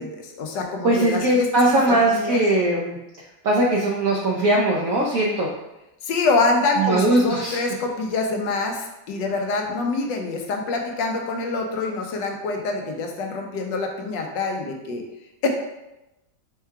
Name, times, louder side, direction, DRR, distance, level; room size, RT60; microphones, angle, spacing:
voice 1, 0.0-2.4 6.0-15.0 15.4-15.5, left 3 dB, 75° left, 2 dB, 1.3 m, -25 dB
voice 2, 0.8-3.0 3.4-5.5 6.8-7.6, right 1 dB, 75° right, -2 dB, 0.7 m, -20 dB
4.5 x 2.3 x 4.5 m, 0.94 s
omnidirectional pair, 2.0 m